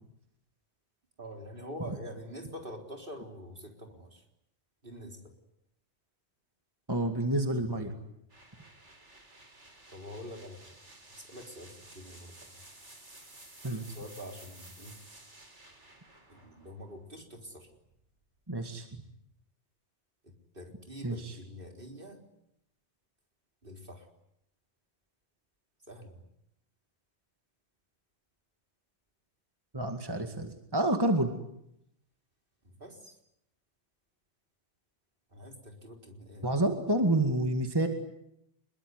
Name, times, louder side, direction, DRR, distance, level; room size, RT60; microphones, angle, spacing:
voice 1, 1.2-4.2 4.8-5.3 7.8-8.0 9.9-10.7 11.1-12.5 13.6-15.0 16.3-17.7 20.2-22.2 23.6-24.1 25.9-26.2 32.6-33.2 35.3-36.6, equal, 50° right, 3 dB, 4.2 m, -46 dB
voice 2, 6.9-7.9 13.6-13.8 18.5-19.0 21.0-21.3 29.7-31.3 36.4-37.9, right 1 dB, 20° right, 5 dB, 2.2 m, -29 dB
sound 1, 8.3-18.1, right 2 dB, 90° right, 4.8 m, -54 dB
26.0 x 22.5 x 9.6 m, 0.79 s
omnidirectional pair, 1.2 m